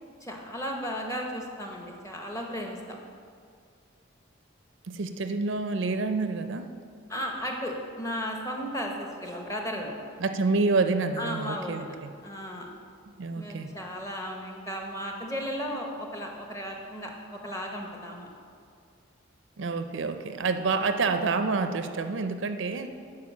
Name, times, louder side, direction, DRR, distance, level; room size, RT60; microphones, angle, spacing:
voice 1, 0.2-2.8 7.1-10.0 11.2-11.9 12.2-12.7 13.3-18.3 20.3-20.5, equal, 15° left, 1 dB, 1.0 m, -35 dB
voice 2, 4.9-6.7 10.2-12.1 13.2-13.7 19.6-22.9, right 3 dB, 65° right, 8 dB, 0.5 m, -28 dB
9.7 x 4.7 x 7.1 m, 2.3 s
head